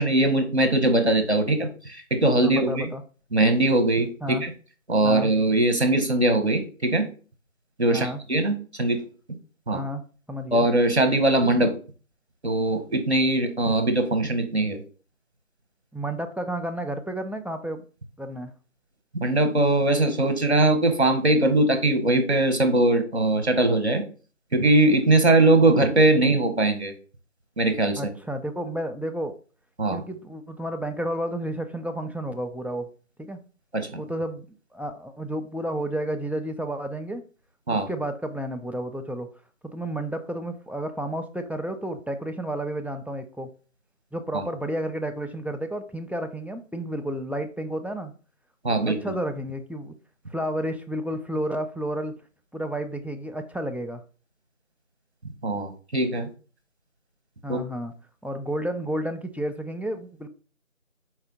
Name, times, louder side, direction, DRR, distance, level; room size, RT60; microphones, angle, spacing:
voice 1, 0.0-2.9 3.3-4.5 4.9-7.1 7.8-9.0 9.7-9.8 10.5-11.7 12.4-14.8 19.1-24.0 24.5-26.9 27.6-28.0 29.8-30.0 33.7-34.0 37.7-37.9 44.3-44.4 48.6-49.0 55.4-56.3 57.5-57.6, right 2 dB, 55° right, 7 dB, 0.8 m, -21 dB
voice 2, 2.4-3.0 4.2-4.4 5.0-5.3 7.9-8.2 9.7-10.0 10.3-10.7 15.9-17.8 18.2-18.5 28.0-29.4 29.9-32.9 33.3-33.4 34.0-34.5 34.7-37.2 37.7-39.3 39.6-43.5 44.1-48.1 48.9-49.9 50.3-52.2 52.5-54.0 57.4-57.9 58.2-60.3, right 1 dB, 5° right, 4 dB, 0.3 m, -31 dB
4.2 x 2.5 x 3.6 m, 0.38 s
figure-of-eight pair, 180°, 41 cm